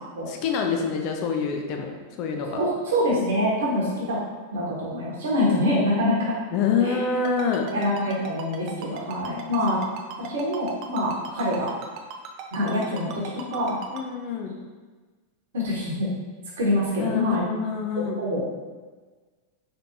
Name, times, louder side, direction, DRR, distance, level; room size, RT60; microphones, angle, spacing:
voice 1, 0.3-2.5 6.5-7.7 13.9-14.5 17.0-18.2, left 5 dB, 40° left, 2 dB, 0.5 m, -26 dB
voice 2, 2.5-4.2 4.5-6.4 6.8-7.0 7.7-9.8 10.2-11.7 12.5-13.8 15.5-16.1 16.6-17.4 18.0-18.4, left 1 dB, 60° right, -5 dB, 1.2 m, -25 dB
Ringtone, 7.2-14.0, right 7 dB, 40° right, 0.4 m, -37 dB
4.0 x 3.3 x 2.7 m, 1.3 s
figure-of-eight pair, 90°, 0 cm